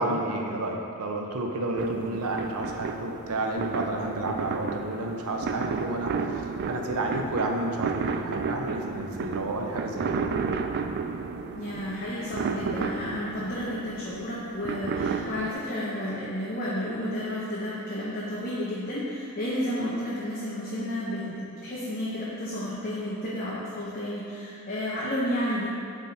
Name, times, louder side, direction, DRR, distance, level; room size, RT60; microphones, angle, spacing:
voice 1, 0.0-10.2, right 2 dB, 80° right, 1 dB, 0.7 m, -30 dB
sound 1, 1.8-15.5, right 5 dB, 50° right, 0.3 m, -32 dB
voice 2, 11.5-25.7, left 1 dB, 40° left, -7 dB, 0.9 m, -31 dB
7.7 x 3.6 x 4.2 m, 2.5 s
head